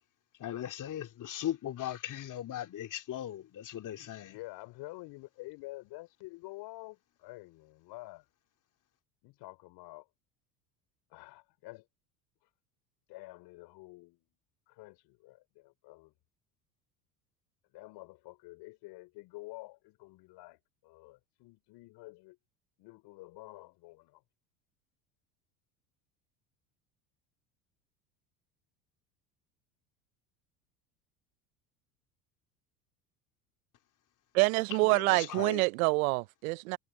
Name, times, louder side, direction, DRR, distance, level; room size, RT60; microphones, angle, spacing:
voice 1, 0.4-4.4 34.8-35.6, left 11 dB, 45° left, 3.0 m, -38 dB
voice 2, 4.3-8.2 9.2-10.1 11.1-11.9 13.1-14.3 14.7-16.1 17.7-22.4 22.8-24.2, left 21 dB, 60° left, 4.4 m, -49 dB
voice 3, 34.3-36.8, right 26 dB, 70° right, 0.9 m, -27 dB
hypercardioid pair, 75°, 45 cm